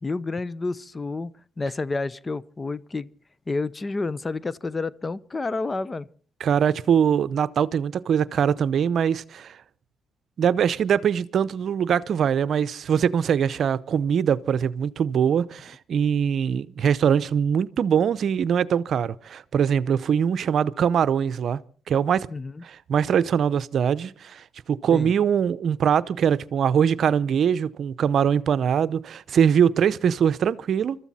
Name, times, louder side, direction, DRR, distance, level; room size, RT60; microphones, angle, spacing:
voice 1, 0.0-1.3 1.6-3.1 3.5-6.1 22.3-22.6 24.9-25.1, left 3 dB, 25° left, 0.7 m, -29 dB
voice 2, 6.4-9.6 10.4-21.6 21.9-22.3 22.6-31.0, right 8 dB, 60° right, 0.7 m, -22 dB
25.0 x 13.5 x 4.2 m
cardioid pair, 80°, 0 cm